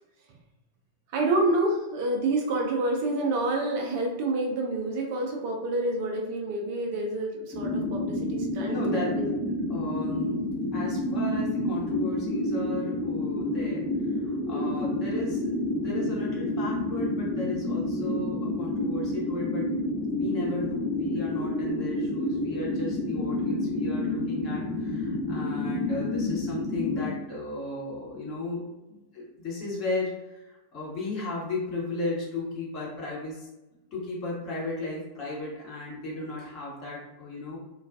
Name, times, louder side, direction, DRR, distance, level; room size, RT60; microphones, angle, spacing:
voice 1, 1.1-9.3 14.5-14.7, right 2 dB, 45° right, 1 dB, 0.5 m, -28 dB
sound 1, 7.5-27.1, left 1 dB, 10° left, 1.0 m, -29 dB
voice 2, 8.6-10.4 10.7-13.8 14.2-19.7 20.1-28.6 28.9-33.5 33.9-37.6, left 2 dB, 35° left, -4 dB, 1.0 m, -35 dB
2.3 x 2.3 x 2.5 m, 0.98 s
figure-of-eight pair, 90°, 0 cm